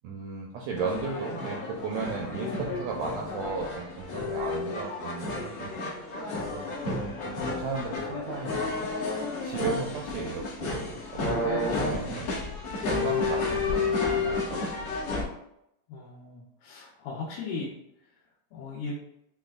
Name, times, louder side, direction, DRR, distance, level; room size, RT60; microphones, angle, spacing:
voice 1, 0.0-5.8 6.5-8.9 9.4-12.3 12.9-13.5 13.7-14.9, right 4 dB, 80° right, -1 dB, 1.6 m, -35 dB
sound 1, 0.8-15.2, left 3 dB, 55° left, 1.8 m, -31 dB
voice 2, 15.9-17.7 18.5-19.0, left 4 dB, 90° left, -7 dB, 2.6 m, -37 dB
6.5 x 3.3 x 2.3 m, 0.78 s
omnidirectional pair, 3.7 m